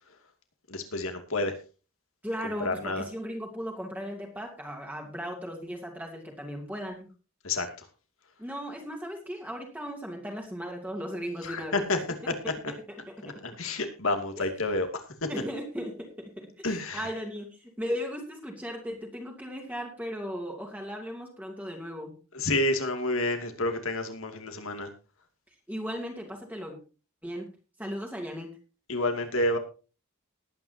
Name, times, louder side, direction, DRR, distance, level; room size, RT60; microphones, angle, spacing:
voice 1, 0.7-1.5 2.6-3.0 7.4-7.9 11.4-12.0 13.2-15.3 16.6-17.1 22.3-24.9 28.9-29.6, left 2 dB, 70° left, 6 dB, 2.5 m, -29 dB
voice 2, 2.2-7.1 8.4-11.8 12.2-12.8 13.1-13.2 14.4-14.5 15.3-22.1 25.7-26.8 27.2-27.5 27.8-28.5, equal, 5° right, 0 dB, 2.7 m, -37 dB
20.0 x 9.4 x 2.8 m, 0.34 s
head